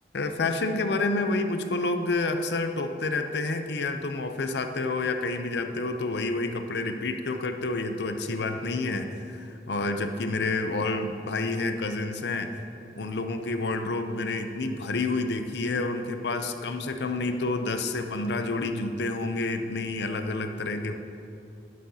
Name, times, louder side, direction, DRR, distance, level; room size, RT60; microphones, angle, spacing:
voice 1, 0.1-12.6 13.0-20.9, left 3 dB, 75° left, 7 dB, 0.6 m, -29 dB
11.5 x 10.5 x 2.8 m, 2.6 s
head